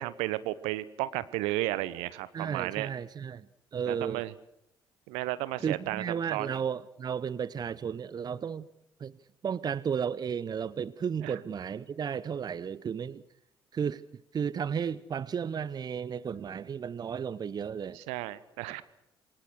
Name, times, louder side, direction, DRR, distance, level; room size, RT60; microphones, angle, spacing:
voice 1, 0.0-2.9 3.9-4.3 5.1-6.0 6.3-6.5 11.2-11.3 17.9-18.8, right 17 dB, 65° right, 17 dB, 1.1 m, -33 dB
voice 2, 2.3-4.2 5.6-8.7 9.0-9.2 9.4-13.2 13.7-14.1 14.3-18.0, right 7 dB, 35° right, 20 dB, 0.9 m, -33 dB
27.5 x 23.5 x 6.5 m, 0.77 s
figure-of-eight pair, 50°, 11 cm